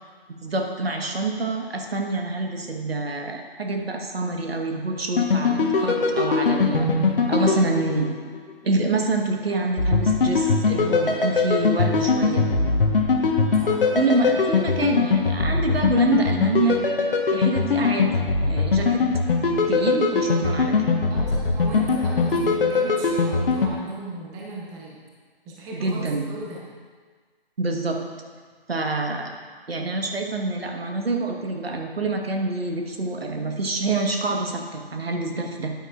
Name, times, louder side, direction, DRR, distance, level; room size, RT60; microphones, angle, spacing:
voice 1, 0.4-6.9 7.3-8.1 8.6-12.5 13.9-16.8 17.3-19.0 19.7-20.8 25.7-26.3 27.6-28.0 28.7-29.3 29.7-35.7, right 2 dB, 75° right, 3 dB, 1.5 m, -26 dB
sound 1, 5.2-8.5 9.8-23.7, left 4 dB, 60° left, 1.3 m, -21 dB
voice 2, 13.6-13.9 21.1-25.0 25.5-26.7, right 2 dB, 10° right, -3 dB, 0.8 m, -37 dB
13.5 x 9.2 x 2.5 m, 1.6 s
figure-of-eight pair, 145°, 30 cm